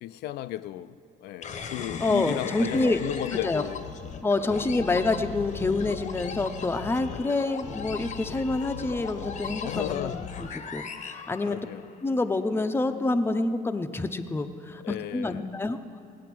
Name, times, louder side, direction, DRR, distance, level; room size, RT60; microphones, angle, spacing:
voice 1, 0.0-3.9 4.5-4.7 7.1-7.4 9.6-10.2 11.5-11.9 14.8-15.5, left 14 dB, 75° left, 0.4 m, -34 dB
sound 1, 1.4-12.0, left 6 dB, 45° left, 0.8 m, -37 dB
voice 2, 2.0-3.0 3.4-3.6 4.2-11.6 12.0-15.8, left 2 dB, 15° left, 0.6 m, -27 dB
16.5 x 9.2 x 6.1 m
cardioid pair, 110°, 17 cm